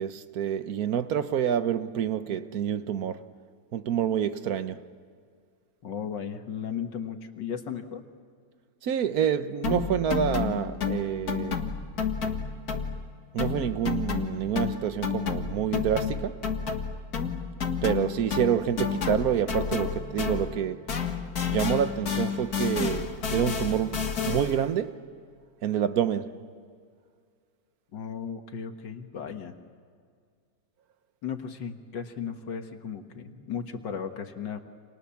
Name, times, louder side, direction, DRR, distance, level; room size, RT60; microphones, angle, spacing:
voice 1, 0.0-3.2 3.7-4.8 8.8-11.6 13.3-16.4 17.8-20.8 21.5-25.0 25.6-26.3, right 9 dB, 60° right, 1.3 m, -27 dB
voice 2, 5.8-8.0 27.9-29.5 31.2-34.6, left 7 dB, 75° left, 2.2 m, -35 dB
sound 1, 9.6-13.1 13.4-20.6 20.9-24.7, left 6 dB, 55° left, 2.1 m, -30 dB
29.5 x 27.5 x 7.2 m
omnidirectional pair, 2.0 m